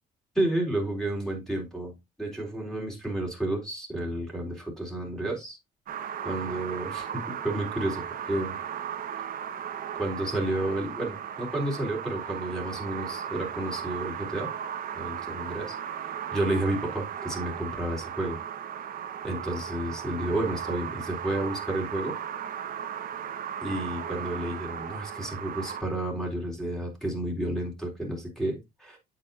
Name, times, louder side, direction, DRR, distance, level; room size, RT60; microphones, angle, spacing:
voice 1, 0.3-5.6 6.2-8.6 10.0-14.5 14.9-15.8 16.3-18.4 19.2-22.2 23.6-29.0, right 1 dB, 5° left, 0 dB, 3.8 m, -31 dB
sound 1, 5.9-25.8, right 8 dB, 55° right, 1.3 m, -36 dB
8.9 x 7.5 x 2.7 m, 0.22 s
cardioid pair, 110°, 17 cm